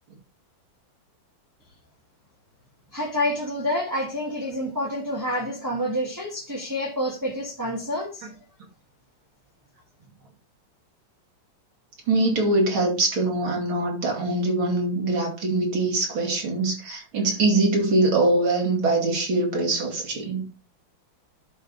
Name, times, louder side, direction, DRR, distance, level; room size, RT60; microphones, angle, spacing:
voice 1, 2.9-8.3, left 1 dB, 10° right, 1.6 m, -28 dB
voice 2, 12.1-20.4, right 2 dB, 90° right, 3.2 m, -23 dB
11.0 x 4.1 x 4.7 m
omnidirectional pair, 2.2 m